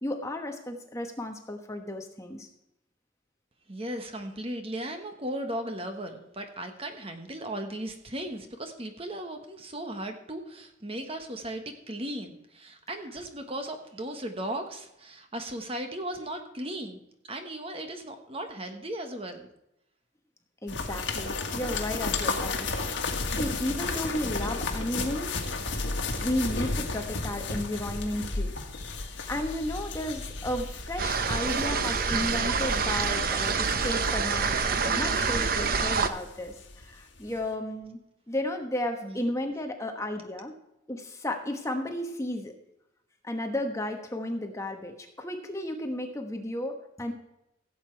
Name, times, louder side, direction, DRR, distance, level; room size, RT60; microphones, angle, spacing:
voice 1, 0.0-2.5 20.6-25.4 26.2-28.6 29.1-38.0 38.3-40.6 40.9-42.5 43.2-47.1, left 1 dB, 15° left, 4 dB, 1.1 m, -33 dB
voice 2, 3.7-17.0 17.2-19.5 39.0-39.3, right 1 dB, 30° right, 6 dB, 1.3 m, -36 dB
sound 1, 20.7-36.8 37.2-37.3, left 3 dB, 70° left, 1.8 m, -34 dB
sound 2, 31.0-36.1, right 5 dB, 50° right, 0.8 m, -27 dB
16.5 x 8.2 x 4.6 m, 0.85 s
head